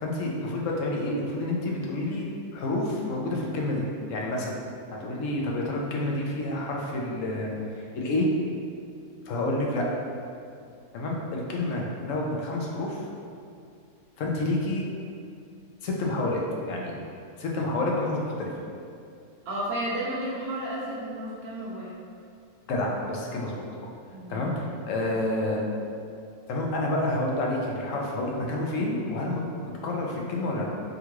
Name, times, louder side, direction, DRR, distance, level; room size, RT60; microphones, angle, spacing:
voice 1, 0.0-2.3 2.5-4.5 4.9-8.3 9.3-9.8 10.9-13.0 14.2-14.8 15.8-16.9 17.4-18.5 22.7-23.6 24.3-25.6 26.5-30.6, left 2 dB, 70° left, -2 dB, 0.8 m, -29 dB
voice 2, 19.5-21.9 24.1-24.5, right 1 dB, 75° right, -5 dB, 1.2 m, -32 dB
3.6 x 2.3 x 3.0 m, 2.4 s
omnidirectional pair, 1.6 m